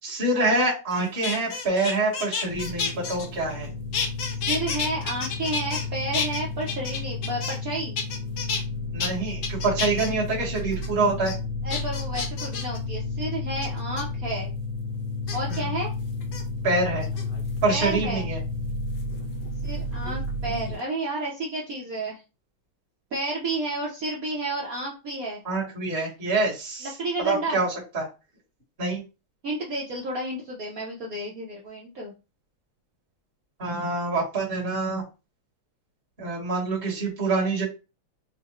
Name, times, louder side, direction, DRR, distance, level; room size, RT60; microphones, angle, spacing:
voice 1, 0.0-3.7 8.9-11.3 15.5-15.7 16.6-17.1 17.6-18.4 25.4-26.9 27.2-28.1 28.8-29.0 33.6-35.0 36.2-37.6, right 2 dB, 30° right, -5 dB, 1.4 m, -26 dB
sound 1, 0.9-3.7 3.9-5.9 6.1-7.7 8.0-8.6 9.0-9.1 9.4-10.1 10.5-10.9 11.2-11.3 11.7-12.8 13.6-14.0 15.3-15.6 16.2-16.4 17.0-17.6 19.0-20.2 20.4-20.8, left 5 dB, 75° left, 0.7 m, -31 dB
sound 2, 2.5-20.8, left 2 dB, 80° right, 1.9 m, -32 dB
voice 2, 4.5-8.0 11.6-14.5 15.3-15.9 17.7-18.3 19.6-22.2 23.1-25.4 26.8-27.6 29.4-32.1, right 2 dB, 60° right, -2 dB, 0.9 m, -31 dB
4.6 x 2.1 x 2.9 m, 0.29 s
omnidirectional pair, 2.3 m